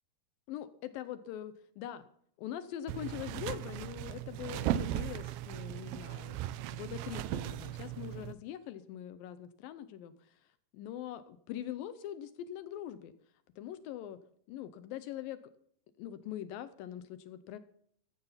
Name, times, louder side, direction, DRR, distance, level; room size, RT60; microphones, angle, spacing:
voice 1, 0.5-2.1 2.4-6.4 6.7-10.5 10.7-13.1 13.6-14.2 14.5-15.4 16.0-17.6, left 11 dB, 75° left, 13 dB, 2.2 m, -43 dB
sound 1, 2.9-8.3, right 12 dB, 80° right, 2.4 m, -37 dB
14.5 x 13.0 x 5.7 m, 0.65 s
omnidirectional pair, 4.5 m